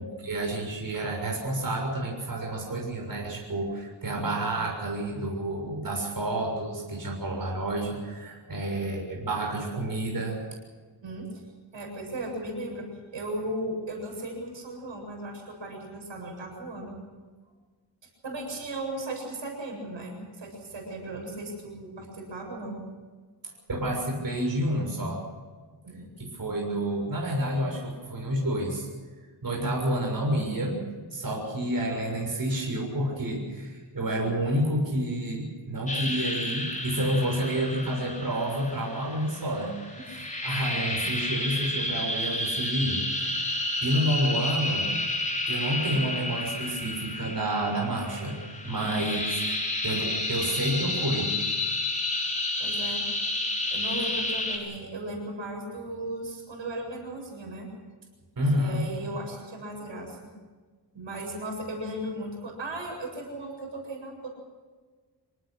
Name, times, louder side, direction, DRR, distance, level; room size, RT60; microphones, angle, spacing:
voice 1, 0.0-10.4 23.7-25.2 26.2-28.9 29.4-30.8 31.1-43.4 43.8-44.9 45.5-48.4 48.6-49.2 49.8-51.3 58.4-58.8, right 1 dB, 50° right, 0 dB, 6.7 m, -29 dB
voice 2, 11.7-12.9 13.1-17.0 18.2-22.8 25.8-26.1 40.0-40.2 48.8-49.2 52.6-53.0 53.7-57.7 58.6-60.2 60.9-64.3, right 1 dB, 80° right, 1 dB, 7.9 m, -36 dB
sound 1, 35.9-54.6, left 2 dB, 15° left, 4.9 m, -31 dB
27.0 x 18.5 x 6.5 m, 1.4 s
wide cardioid pair, 90°, 45 cm